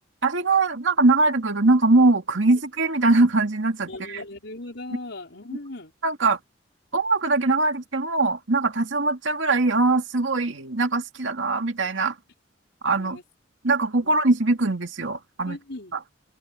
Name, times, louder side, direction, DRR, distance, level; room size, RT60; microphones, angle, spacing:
voice 1, 0.2-4.2 6.0-6.4 6.9-12.1 12.8-13.2 13.6-15.6, right 3 dB, 85° right, 2.3 m, -21 dB
voice 2, 3.9-5.9 12.9-13.2 14.0-14.2 15.4-16.0, left 2 dB, 65° left, 5.2 m, -38 dB
open air
head